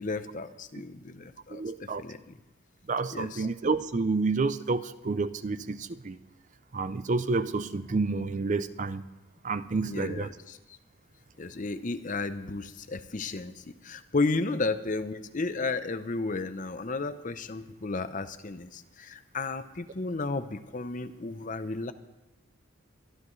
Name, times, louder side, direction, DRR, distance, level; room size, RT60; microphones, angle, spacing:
voice 1, 0.0-2.3 3.1-3.5 9.8-10.6 11.4-21.9, left 3 dB, 40° left, 11 dB, 0.7 m, -33 dB
voice 2, 1.5-2.0 2.9-6.2 6.7-9.0 9.4-10.3, right 3 dB, 35° right, 13 dB, 0.5 m, -29 dB
23.5 x 12.0 x 3.2 m, 1.1 s
head